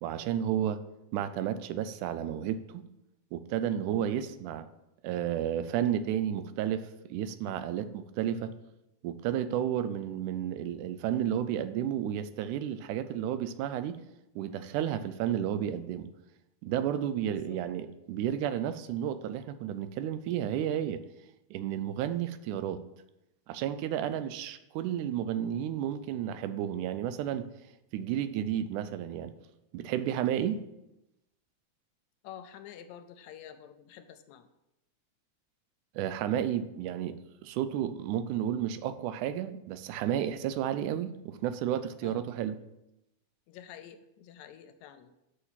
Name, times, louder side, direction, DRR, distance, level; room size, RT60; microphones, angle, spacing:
voice 1, 0.0-0.8 1.1-2.8 3.3-4.7 5.0-8.5 9.0-14.0 14.4-16.1 16.6-21.0 21.5-22.8 23.5-27.4 27.9-29.3 29.7-30.6 36.0-42.6, right 10 dB, 90° right, 12 dB, 2.1 m, -32 dB
voice 2, 17.2-17.6 24.1-24.3 32.2-34.5 42.0-42.2 43.5-45.1, left 9 dB, 80° left, 9 dB, 1.8 m, -49 dB
6.4 x 5.9 x 5.6 m, 0.89 s
omnidirectional pair, 3.5 m